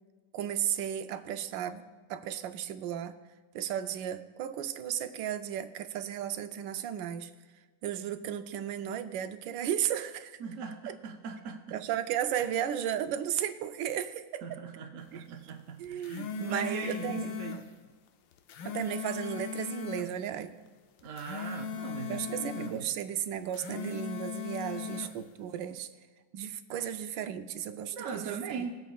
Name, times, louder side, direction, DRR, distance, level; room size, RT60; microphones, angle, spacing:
voice 1, 0.3-3.1 3.5-7.3 7.8-10.4 10.9-11.0 11.7-14.6 15.1-15.2 15.8-17.3 18.6-20.5 22.1-25.9 26.3-28.7, right 10 dB, 90° right, 10 dB, 1.3 m, -34 dB
voice 2, 10.4-11.8 14.4-17.6 21.0-22.8 24.8-24.9 26.7-26.8 27.9-28.8, right 6 dB, 65° right, 3 dB, 0.8 m, -40 dB
sound 1, 15.8-17.7 18.3-20.1 21.0-22.8 23.4-25.2, left 7 dB, 85° left, 1.4 m, -38 dB
21.5 x 8.2 x 2.3 m, 1.3 s
omnidirectional pair, 2.0 m